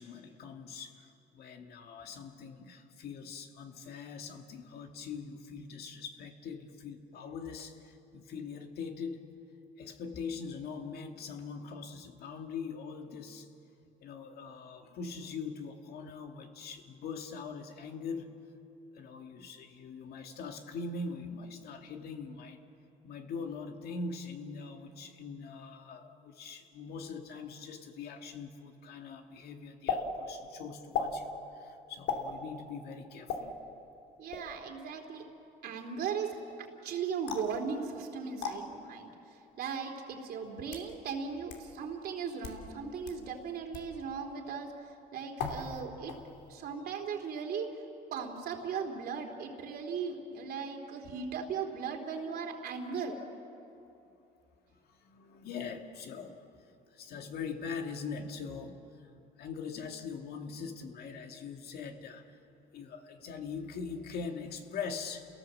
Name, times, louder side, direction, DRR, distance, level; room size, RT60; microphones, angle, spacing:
voice 1, 0.0-9.3 9.8-13.5 14.0-18.4 18.9-22.6 23.0-33.5 54.9-56.4 56.9-62.4 62.7-65.3, left 5 dB, 70° left, 4 dB, 2.2 m, -42 dB
sound 1, 29.9-30.0 30.9-31.1 32.1-32.3 33.3-33.4 34.3-34.6 37.3-37.5 38.4-38.5 39.5-39.6 40.4-40.9 41.5-41.6 42.3-42.6 43.0-43.2 43.7-43.9 45.4-45.8 46.1-46.5, left 6 dB, 85° left, 3.0 m, -35 dB
voice 2, 34.2-35.2 35.6-36.4 36.8-39.1 39.6-44.7 45.1-46.1 46.5-47.7 48.1-53.2, right 6 dB, 65° right, 3 dB, 3.3 m, -37 dB
30.0 x 17.5 x 7.6 m, 2.8 s
cardioid pair, 110°, 17 cm